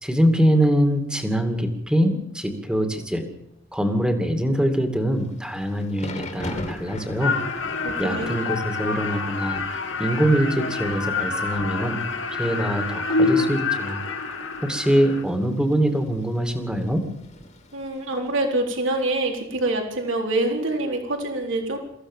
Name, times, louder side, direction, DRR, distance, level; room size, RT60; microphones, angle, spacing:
voice 1, 0.0-3.2 3.7-7.4 8.0-9.6 10.0-12.0 12.4-14.0 14.3-14.4 14.6-17.1, equal, 5° right, 5 dB, 2.5 m, -23 dB
Thunder / Rain, 5.2-18.3, left 1 dB, 35° left, 2.7 m, -41 dB
sound 1, 7.2-15.2, left 4 dB, 65° left, 2.1 m, -27 dB
voice 2, 7.8-8.3 17.7-21.8, right 2 dB, 65° right, 2 dB, 4.2 m, -25 dB
23.5 x 15.5 x 7.4 m, 0.76 s
head